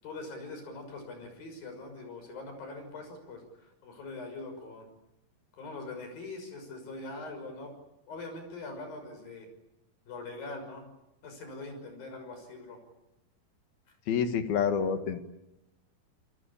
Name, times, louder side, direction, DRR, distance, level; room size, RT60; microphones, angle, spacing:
voice 1, 0.0-4.9 5.5-7.7 8.1-9.5 10.1-10.9 11.2-12.8 13.9-14.0, left 2 dB, 75° left, 6 dB, 8.0 m, -42 dB
voice 2, 14.1-15.2, left 7 dB, 90° left, 8 dB, 3.7 m, -28 dB
28.0 x 24.0 x 8.8 m, 0.91 s
omnidirectional pair, 4.2 m